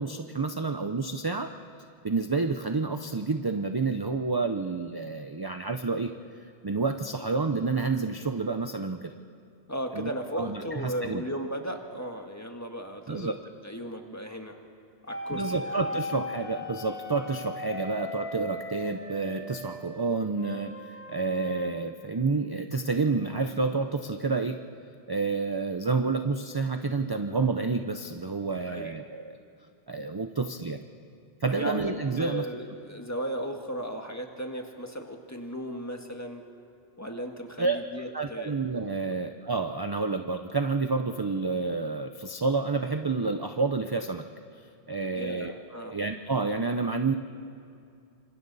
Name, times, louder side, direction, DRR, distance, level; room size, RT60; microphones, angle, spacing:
voice 1, 0.0-1.5 2.0-6.1 6.6-9.1 9.9-10.1 10.4-11.2 13.1-13.3 15.3-24.6 25.1-29.4 29.9-30.8 31.4-32.5 37.6-37.8 38.1-44.2 44.9-45.5 45.9-47.1, right 4 dB, 25° right, 7 dB, 0.5 m, -29 dB
voice 2, 9.7-14.6 15.1-15.8 28.7-29.0 31.6-36.4 37.0-38.5 39.0-39.1 45.1-46.0, equal, 15° left, 3 dB, 1.5 m, -36 dB
sound 1, 15.1-19.8 20.4-21.7, left 2 dB, 75° left, 4.5 m, -38 dB
28.0 x 26.0 x 4.1 m, 2.4 s
omnidirectional pair, 1.1 m